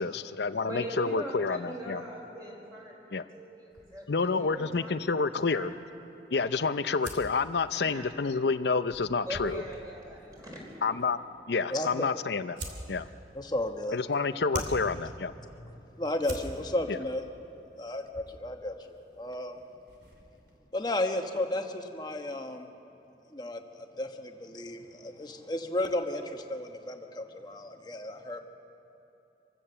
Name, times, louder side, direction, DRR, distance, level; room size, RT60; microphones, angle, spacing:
voice 1, 0.0-2.0 3.1-3.2 4.1-5.7 6.3-9.6 10.8-11.2 11.5-12.6 12.9-13.1 13.9-15.3 16.9-17.0, left 4 dB, 70° left, 12 dB, 0.6 m, -29 dB
voice 2, 0.7-3.1 3.3-4.9 5.5-5.6 7.8-8.1 9.2-10.9, right 1 dB, 20° right, -2 dB, 4.5 m, -41 dB
sound 1, 3.7-20.6, right 1 dB, 70° right, 2.9 m, -47 dB
voice 3, 11.7-12.1 13.3-14.0 14.5-14.6 15.6-17.2 17.8-19.6 20.7-22.7 23.3-28.4, left 1 dB, 25° left, 4 dB, 1.1 m, -34 dB
26.0 x 16.0 x 6.9 m, 2.9 s
head